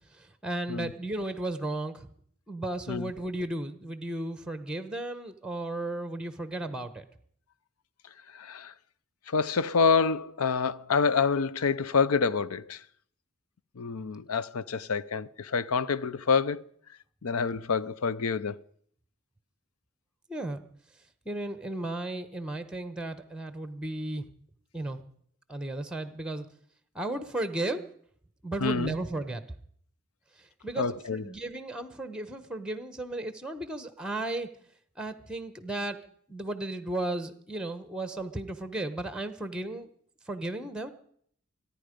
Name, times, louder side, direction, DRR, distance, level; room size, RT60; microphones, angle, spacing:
voice 1, 0.1-2.1 2.5-7.0 20.3-20.6 21.2-24.3 24.7-25.0 25.5-26.5 26.9-27.8 28.4-29.4 30.4-34.5 35.0-36.0 36.3-39.9 40.3-40.9, right 2 dB, 5° right, 0.9 m, -34 dB
voice 2, 8.3-8.7 9.3-12.8 13.8-16.6 17.2-18.6 28.6-28.9 30.8-31.2, left 5 dB, 90° left, 0.6 m, -27 dB
24.5 x 10.0 x 5.2 m
head